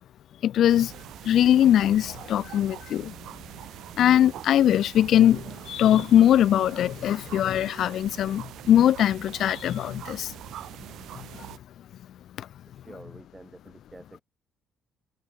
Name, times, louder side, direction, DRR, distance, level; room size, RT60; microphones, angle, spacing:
voice 1, 0.4-0.9 1.2-3.1 4.0-10.3 11.1-11.5 12.4-12.5, left 11 dB, 55° left, 0.4 m, -21 dB
sound 1, 0.7-11.6, right 13 dB, 65° right, 4.3 m, -43 dB
voice 2, 12.7-14.2, right 2 dB, 10° right, 3.2 m, -48 dB
cardioid pair, 165°, 0 cm